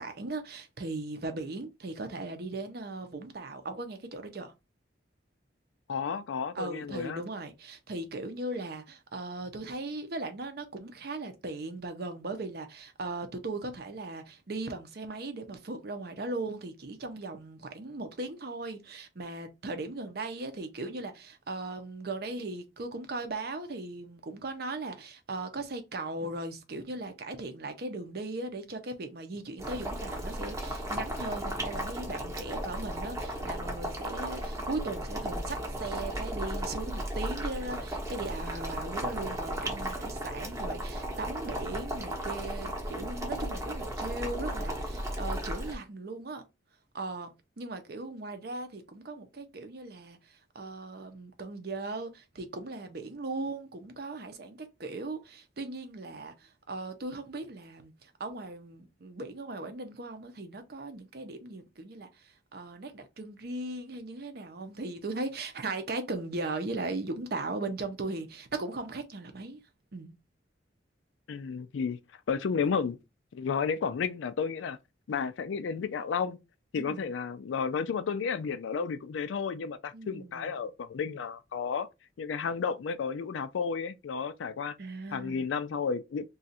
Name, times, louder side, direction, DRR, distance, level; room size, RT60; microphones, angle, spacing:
voice 1, 0.0-4.5 6.5-46.4 46.9-62.1 62.5-69.6 69.9-70.2 76.7-77.0 79.9-80.5 84.8-85.5, right 2 dB, 55° right, 0.6 m, -38 dB
voice 2, 5.9-7.2 71.3-72.0 72.3-73.0 73.3-74.8 75.1-76.4 76.7-81.9 82.2-84.7 85.1-86.3, left 6 dB, 80° left, 0.4 m, -32 dB
Boiling, 29.6-45.7, right 1 dB, 15° right, 0.8 m, -35 dB
2.5 x 2.4 x 4.0 m
head